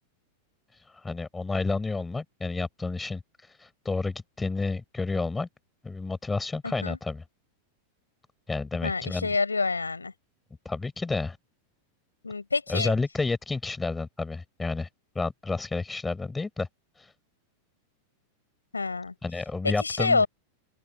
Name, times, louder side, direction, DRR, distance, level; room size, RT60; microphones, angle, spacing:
voice 1, 1.0-3.2 3.6-5.5 5.8-7.2 8.5-9.3 10.7-11.4 12.7-14.9 15.2-16.7 19.2-20.3, left 3 dB, 10° left, 5.4 m, -30 dB
voice 2, 6.6-7.0 8.8-10.1 12.2-12.9 18.7-19.1 19.6-20.3, left 4 dB, 80° left, 6.3 m, -27 dB
open air
figure-of-eight pair, 90°, 0 cm